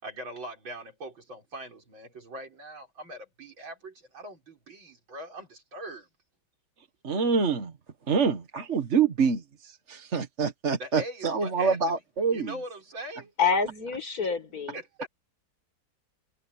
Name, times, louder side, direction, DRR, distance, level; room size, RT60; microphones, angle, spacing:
voice 1, 0.0-6.1 10.8-12.0 12.3-13.3 14.7-15.1, right 1 dB, 80° right, 6.7 m, -41 dB
voice 2, 7.0-7.7 8.1-12.5, right 5 dB, 40° right, 1.6 m, -26 dB
voice 3, 13.4-14.8, left 5 dB, 45° left, 5.4 m, -27 dB
omnidirectional pair, 2.1 m